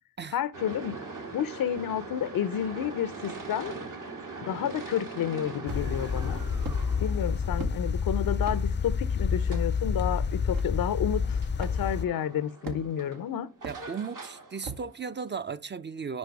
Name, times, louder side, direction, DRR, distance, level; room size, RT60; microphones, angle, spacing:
voice 1, 0.3-0.9 1.3-3.7 4.5-6.4 7.0-13.5, left 9 dB, 80° left, 0.5 m, -30 dB
sound 1, 0.5-15.3, right 3 dB, 70° right, 1.5 m, -43 dB
sound 2, 5.6-6.1 6.6-6.8 7.6-7.8 8.4-8.6 9.5-9.7 10.5-10.6 11.6-11.8 12.6-13.1 13.6-13.8 14.6-14.9, right 4 dB, 85° right, 1.1 m, -38 dB
sound 3, 5.7-12.1, left 6 dB, 35° left, 0.4 m, -28 dB
voice 2, 13.6-16.2, right 6 dB, 35° right, 0.4 m, -36 dB
5.3 x 5.2 x 4.6 m
cardioid pair, 50°, 34 cm